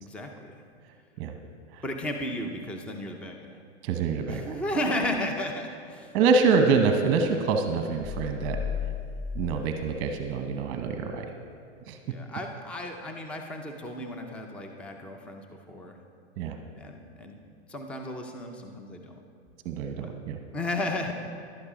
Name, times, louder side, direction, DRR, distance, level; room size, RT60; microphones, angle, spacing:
voice 1, 0.0-0.6 1.8-3.5 4.3-6.1 12.0-16.0 16.8-17.4 17.7-19.2 20.0-20.1 20.5-21.1, left 1 dB, 5° left, 3 dB, 0.5 m, -34 dB
voice 2, 3.8-4.6 6.1-8.6 9.3-11.3 11.9-12.0 16.4-16.6 19.6-20.4, right 4 dB, 35° right, 5 dB, 1.0 m, -25 dB
sound 1, 8.0-11.0, left 6 dB, 50° left, 0.7 m, -35 dB
11.5 x 9.7 x 5.0 m, 2.3 s
hypercardioid pair, 135°, 35 cm